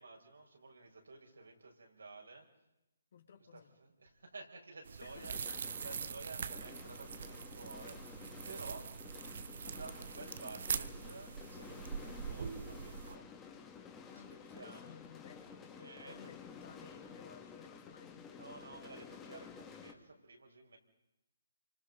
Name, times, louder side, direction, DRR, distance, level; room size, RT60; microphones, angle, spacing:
voice 1, 0.0-2.5 3.4-5.3 5.8-8.9 9.6-13.3 14.0-15.0 15.8-16.3 16.8-16.9 18.3-20.8, right 3 dB, 80° right, 2 dB, 6.1 m, -53 dB
voice 2, 3.1-3.7 5.0-5.9 14.1-18.5, left 7 dB, 55° left, 6 dB, 3.1 m, -57 dB
sound 1, 4.8-13.2, right 6 dB, 60° right, 1.2 m, -43 dB
sound 2, 5.1-19.9, left 6 dB, 15° left, 2.7 m, -53 dB
28.0 x 25.5 x 5.6 m, 0.93 s
figure-of-eight pair, 145°, 0 cm